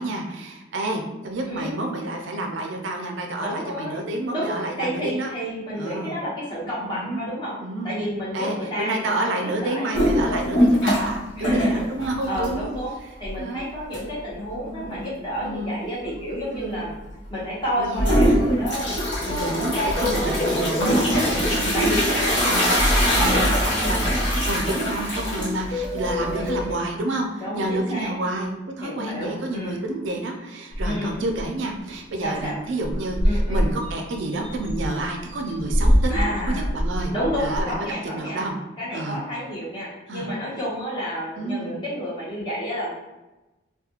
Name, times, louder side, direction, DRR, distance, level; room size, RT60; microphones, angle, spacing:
voice 1, 0.0-5.3 5.7-6.2 6.8-7.2 7.6-8.0 8.3-12.7 13.4-13.7 14.6-15.0 15.4-15.8 16.5-16.8 17.8-18.1 19.3-21.9 22.5-22.7 23.2-23.5 23.8-24.1 24.5-37.1 37.4-38.6 38.9-39.2 40.1-40.3 41.4-41.8, right 2 dB, 70° right, 2 dB, 0.4 m, -29 dB
voice 2, 1.4-1.8 3.4-4.0 4.3-7.5 7.8-9.9 11.3-11.8 12.2-12.9 13.2-16.9 17.3-19.0 19.2-21.4 21.7-22.6 23.1-24.0 26.3-26.8 27.4-28.1 28.8-29.8 30.8-31.2 32.2-32.6 33.2-33.7 36.1-36.7 37.1-38.4 38.8-42.9, equal, 25° left, -7 dB, 0.8 m, -30 dB
sound 1, 9.9-11.2 11.4-12.8 13.2-13.3 13.9-14.0 17.9-26.7, equal, 70° left, 1.0 m, -22 dB
sound 2, 18.8-18.9 19.1-19.3 19.5-19.6 20.0-21.0 25.7-26.7, left 3 dB, 90° left, 0.7 m, -30 dB
sound 3, 30.7-31.5 31.9-32.0 32.3-32.5 32.8-37.8, equal, 5° left, 0.4 m, -24 dB
2.4 x 2.2 x 2.8 m, 1.0 s
head